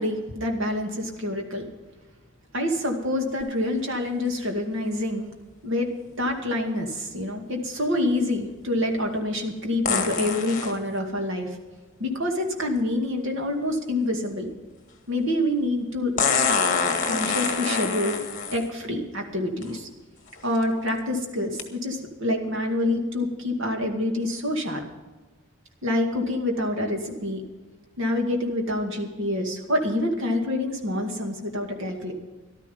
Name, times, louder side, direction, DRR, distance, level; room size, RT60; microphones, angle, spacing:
voice 1, 0.0-1.7 2.5-5.3 5.6-11.6 12.0-14.5 15.1-16.1 17.0-19.9 20.4-24.8 25.8-27.4 28.0-32.1, left 1 dB, 70° right, 3 dB, 2.3 m, -27 dB
sound 1, 9.9-10.8 12.8-12.9 16.2-18.7 19.6-19.7 20.4-20.6 21.6-21.7, left 5 dB, 40° left, 1.6 m, -25 dB
13.5 x 12.5 x 5.4 m, 1.3 s
head